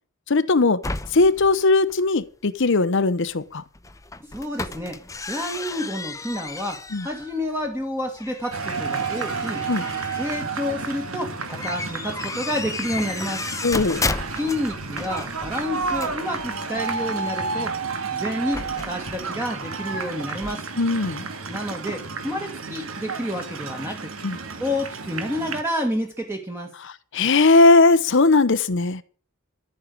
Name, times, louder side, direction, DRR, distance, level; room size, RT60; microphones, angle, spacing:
voice 1, 0.3-0.8 1.1-3.6 6.9-7.1 9.7-9.9 13.6-14.0 20.8-21.3 24.2-24.4 26.8-29.0, left 3 dB, 60° left, 0.8 m, -19 dB
sound 1, 0.8-2.5 3.3-3.4 3.6-7.8 8.1-11.2 11.5-17.0 17.4-19.4 19.6-19.7 20.0-20.1 20.3-20.5, left 3 dB, 15° left, 0.7 m, -34 dB
voice 2, 4.2-5.0 5.3-9.6 10.2-13.5 14.3-17.8 18.1-20.7 21.5-24.1 24.6-26.7, equal, 10° right, 1.8 m, -29 dB
sound 2, 8.5-25.6, right 4 dB, 75° right, 2.1 m, -31 dB
13.5 x 6.6 x 9.5 m
head